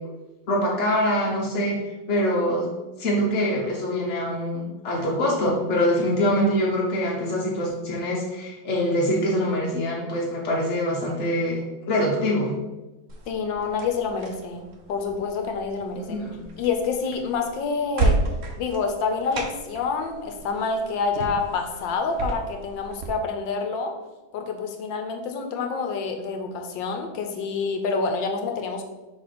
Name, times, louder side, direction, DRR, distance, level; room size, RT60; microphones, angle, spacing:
voice 1, 0.5-2.7 3.0-12.6 16.0-16.4, equal, 50° left, -4 dB, 0.9 m, -24 dB
sound 1, 13.1-23.1, right 3 dB, 85° right, 0.5 m, -32 dB
voice 2, 13.3-16.2 16.6-18.2 18.6-23.9 24.3-28.8, left 4 dB, 75° left, 4 dB, 1.3 m, -27 dB
6.1 x 3.2 x 4.9 m, 1.1 s
omnidirectional pair, 2.2 m